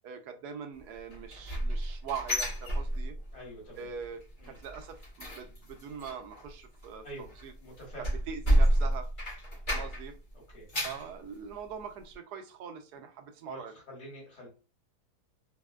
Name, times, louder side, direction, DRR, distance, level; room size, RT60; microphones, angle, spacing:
voice 1, 0.0-3.2 3.8-7.5 8.3-9.1 9.7-10.2 10.8-13.7, right 7 dB, 80° right, 6 dB, 1.1 m, -42 dB
sound 1, 1.1-3.4 3.7-4.1 4.4-10.2 10.5-11.1 11.6-11.7 12.1-12.2, right 1 dB, 40° left, 0.9 m, -30 dB
voice 2, 3.3-3.9 4.4-4.6 7.0-7.3 7.6-8.1 9.7-9.9 10.5-10.7 12.9-13.0 13.4-14.5, equal, 70° left, -3 dB, 2.2 m, -46 dB
4.0 x 2.1 x 2.2 m, 0.35 s
omnidirectional pair, 1.7 m